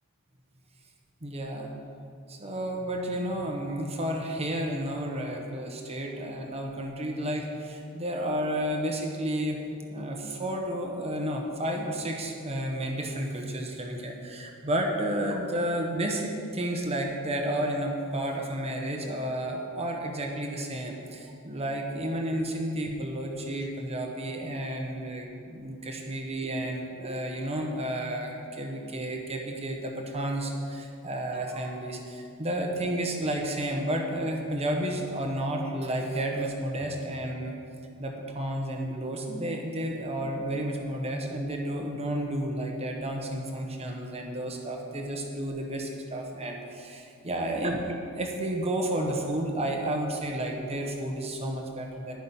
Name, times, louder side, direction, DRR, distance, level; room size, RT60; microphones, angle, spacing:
voice 1, 1.2-1.7 2.3-9.6 9.9-37.5 38.0-52.2, right 1 dB, 30° right, 1 dB, 1.1 m, -31 dB
11.0 x 10.5 x 5.5 m, 2.5 s
head